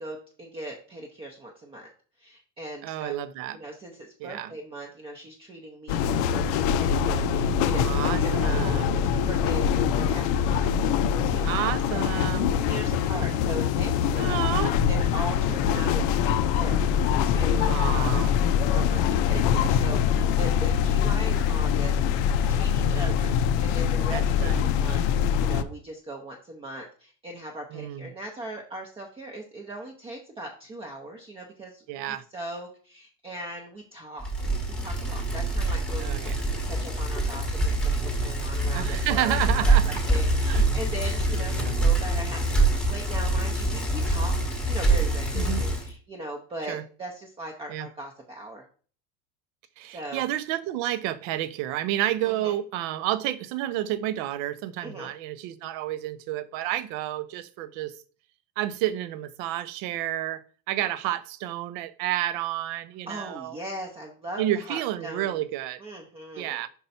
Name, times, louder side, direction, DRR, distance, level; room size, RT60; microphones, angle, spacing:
voice 1, 0.0-1.9 2.2-3.1 3.5-10.7 11.3-11.7 12.3-14.4 14.9-18.4 18.7-22.0 22.3-23.3 23.6-25.1 25.3-34.5 34.8-39.7 40.1-44.4 44.7-48.6 49.9-50.2 52.2-52.6 54.8-55.1 63.1-65.5 65.8-66.6, right 1 dB, 15° right, 1 dB, 0.7 m, -39 dB
voice 2, 2.8-3.6 4.2-4.5 7.8-9.0 11.4-12.5 13.1-13.3 14.2-14.8 17.6-18.3 22.7-23.3 24.1-24.7 27.7-28.1 31.9-32.2 36.0-36.4 38.7-40.0 40.5-40.7 41.4-41.9 45.3-45.7 46.7-46.8 47.7-47.9 49.8-57.9 58.6-60.4 60.7-63.6 64.4-65.8 66.4-66.7, right 13 dB, 55° right, 15 dB, 0.6 m, -30 dB
sound 1, 5.9-25.6, left 8 dB, 65° left, 0.6 m, -24 dB
Bicycle, 34.2-45.9, right 2 dB, ahead, 1.0 m, -25 dB
5.4 x 4.5 x 4.1 m, 0.40 s
cardioid pair, 160°, 35 cm